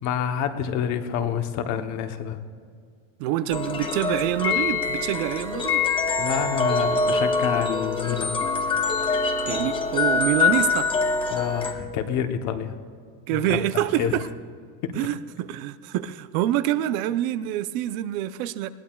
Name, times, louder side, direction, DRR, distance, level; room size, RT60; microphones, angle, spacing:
voice 1, 0.0-2.4 6.2-8.4 11.3-12.7 13.3-13.6 14.0-14.2 14.8-15.0, left 8 dB, 40° left, 0.9 m, -28 dB
voice 2, 3.2-5.8 9.5-10.9 13.3-14.3 14.9-18.7, right 13 dB, 70° right, 0.6 m, -26 dB
sound 1, 3.5-11.7, left 4 dB, 10° left, 0.5 m, -24 dB
20.5 x 17.5 x 2.3 m
cardioid pair, 175°, 44 cm